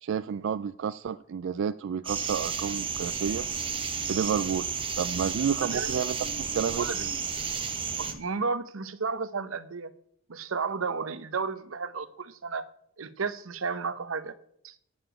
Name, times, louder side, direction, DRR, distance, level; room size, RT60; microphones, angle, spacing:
voice 1, 0.0-3.5 4.1-4.7 5.0-6.9, right 7 dB, 65° right, 14 dB, 0.3 m, -30 dB
sound 1, 2.0-8.1, right 6 dB, 25° right, 1.1 m, -32 dB
voice 2, 6.8-7.1 8.0-9.9 10.3-12.7 13.0-14.4 14.6-14.8, right 4 dB, 90° right, 14 dB, 0.8 m, -33 dB
9.6 x 6.8 x 8.9 m, 0.70 s
head